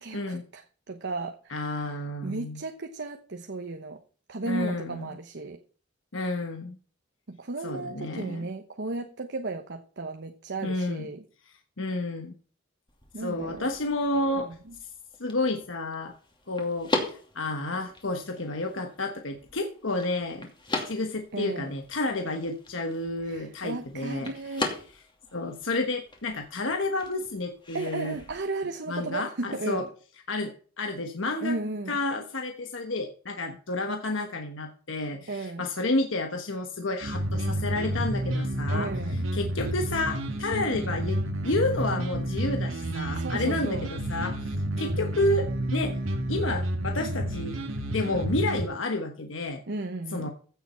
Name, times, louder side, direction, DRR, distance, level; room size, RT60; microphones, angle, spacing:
voice 1, 0.0-1.9 2.2-4.0 4.3-5.6 7.3-11.2 13.1-13.7 14.4-14.8 21.3-21.7 23.2-24.7 27.7-29.9 31.4-32.0 35.3-35.7 38.7-39.3 43.1-43.9 49.7-50.3, right 2 dB, 60° right, 1.0 m, -35 dB
voice 2, 1.5-2.6 4.4-5.1 6.1-6.8 7.6-8.5 10.6-11.1 11.5-12.3 13.2-14.5 14.8-14.9 15.2-16.1 16.5-24.3 25.3-28.2 28.9-29.9 30.3-31.6 31.9-46.0 46.3-49.6 50.1-50.3, left 2 dB, 70° left, 1.3 m, -30 dB
sound 1, 12.9-28.4, left 2 dB, 25° left, 2.6 m, -39 dB
sound 2, 37.0-48.7, right 1 dB, 85° right, 1.8 m, -30 dB
15.5 x 7.1 x 4.4 m
head